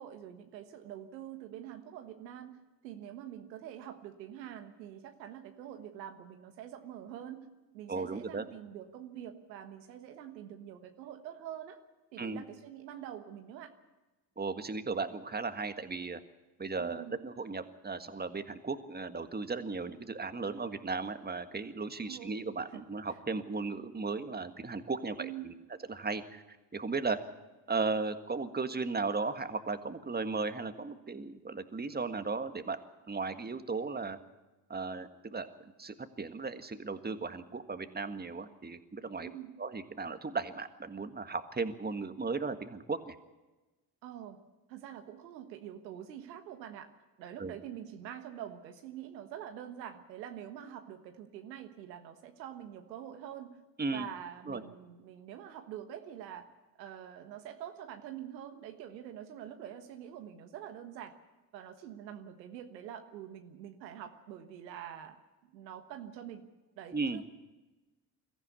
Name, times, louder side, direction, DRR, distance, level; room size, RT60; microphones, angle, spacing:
voice 1, 0.0-7.5 7.7-11.8 12.1-13.7 16.8-17.2 22.1-22.4 22.7-22.8 25.2-25.5 39.2-39.5 44.0-44.4 44.7-46.9 47.2-53.6 53.9-56.5 56.8-61.1 61.5-65.2 65.4-66.5 66.8-67.2, right 10 dB, 90° right, 7 dB, 1.5 m, -45 dB
voice 2, 7.9-8.5 12.2-12.4 14.4-16.2 16.6-25.5 25.9-26.4 26.7-27.2 27.7-32.8 33.1-34.2 34.7-35.5 35.8-39.3 39.6-43.2 47.4-47.6 53.8-54.1 54.5-54.6 66.9-67.2, right 4 dB, 20° right, 9 dB, 1.7 m, -36 dB
23.0 x 14.5 x 8.4 m, 1.1 s
hypercardioid pair, 60°, 49 cm